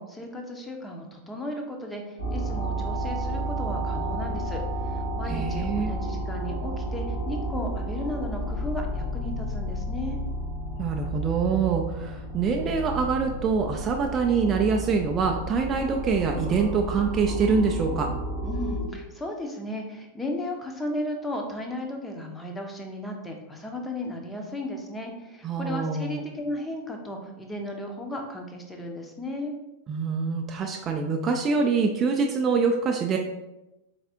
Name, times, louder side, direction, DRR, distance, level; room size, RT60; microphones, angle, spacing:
voice 1, 0.0-10.2 18.4-29.5, left 1 dB, 10° left, 2 dB, 0.6 m, -35 dB
sound 1, 2.2-18.9, right 1 dB, 70° left, 1.3 m, -31 dB
voice 2, 5.3-5.9 10.8-18.1 25.4-26.2 29.9-33.2, right 5 dB, 30° right, 2 dB, 0.3 m, -25 dB
3.9 x 3.4 x 2.8 m, 0.96 s
figure-of-eight pair, 90°, 0 cm